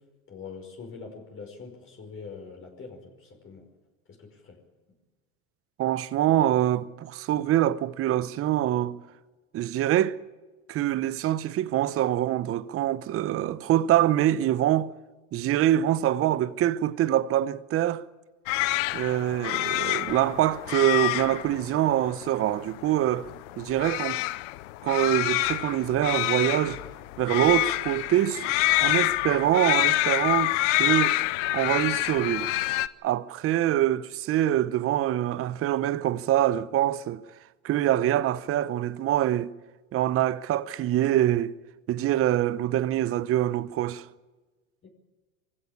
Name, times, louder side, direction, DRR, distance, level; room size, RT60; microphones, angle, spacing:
voice 1, 0.3-3.7 4.1-4.6 44.8-44.9, left 5 dB, 30° left, 5.4 m, -43 dB
voice 2, 5.8-9.0 9.5-10.2 10.7-14.9 15.3-18.1 18.9-23.3 23.6-24.2 24.8-26.8 27.2-28.5 28.8-30.5 30.8-31.2 31.5-32.5 33.0-37.2 37.6-39.5 39.9-41.6 41.9-44.1, right 12 dB, 35° right, 0.9 m, -25 dB
sound 1, 18.5-32.9, left 18 dB, 60° left, 0.9 m, -27 dB
24.0 x 16.0 x 8.7 m
hypercardioid pair, 105°, 41 cm